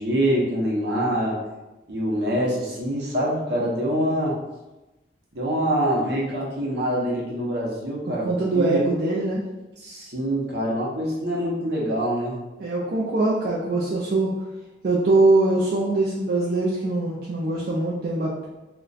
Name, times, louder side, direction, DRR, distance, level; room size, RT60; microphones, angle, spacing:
voice 1, 0.0-1.4 1.9-4.4 5.3-8.3 8.5-8.8 9.8-12.4, equal, 65° right, -4 dB, 0.8 m, -25 dB
voice 2, 8.1-9.4 12.6-14.3 14.8-18.5, right 2 dB, 50° right, -5 dB, 0.4 m, -22 dB
2.4 x 2.2 x 3.9 m, 1.0 s
head